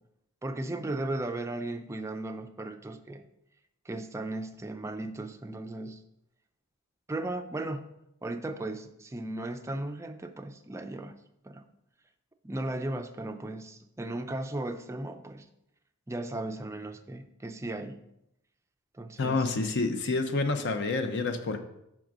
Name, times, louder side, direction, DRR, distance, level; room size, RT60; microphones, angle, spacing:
voice 1, 0.4-3.2 3.9-6.0 7.1-7.9 8.2-11.2 11.4-11.6 12.4-15.5 16.1-18.0 19.0-19.7, right 2 dB, 15° right, 7 dB, 0.4 m, -36 dB
voice 2, 19.2-21.6, left 3 dB, 55° left, 7 dB, 0.6 m, -28 dB
5.9 x 3.8 x 6.0 m, 0.81 s
head